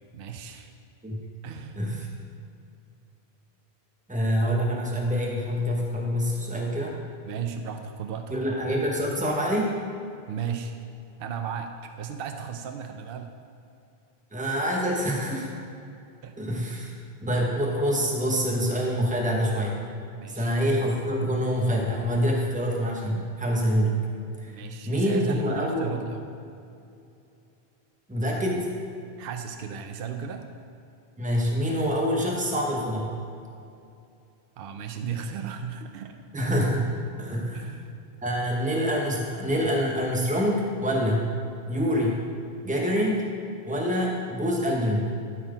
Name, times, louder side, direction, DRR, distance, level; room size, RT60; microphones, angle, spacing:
voice 1, 0.1-0.7 1.4-1.8 7.2-8.5 10.3-10.7 11.2-13.3 16.2-16.5 20.1-20.5 24.4-26.4 29.2-30.4 34.6-36.2 37.5-37.9, right 7 dB, 65° right, 6 dB, 0.8 m, -35 dB
voice 2, 4.1-6.9 8.3-9.7 14.3-15.5 16.4-16.9 17.2-19.8 20.3-24.0 24.4-24.5 24.8-25.9 28.1-28.7 31.2-33.2 36.3-36.9 37.2-37.7 38.2-41.3 41.7-42.2 42.6-43.2 43.6-45.2, equal, 10° right, -1 dB, 1.1 m, -26 dB
12.5 x 4.5 x 5.0 m, 2.6 s
omnidirectional pair, 1.1 m